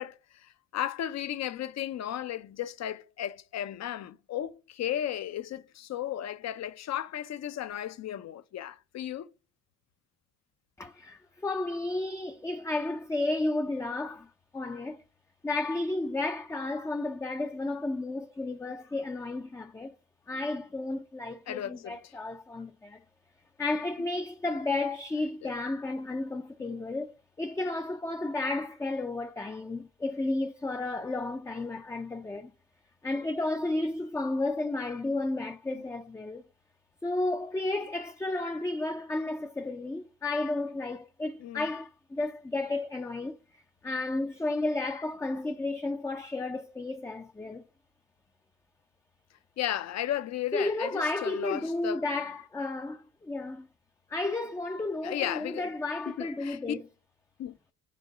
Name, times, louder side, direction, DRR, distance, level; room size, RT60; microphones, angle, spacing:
voice 1, 0.0-9.3 21.5-22.0 25.4-25.5 35.7-35.8 41.4-41.7 49.6-52.0 55.0-55.7 56.1-56.8 57.4-57.6, left 11 dB, 60° left, 0.7 m, -35 dB
voice 2, 10.8-15.0 15.4-19.9 20.3-23.0 23.6-32.5 33.0-36.4 37.0-43.4 43.8-47.6 50.5-53.7 54.1-56.8, left 2 dB, 10° left, 0.5 m, -32 dB
5.2 x 3.7 x 5.9 m
cardioid pair, 90°, 30 cm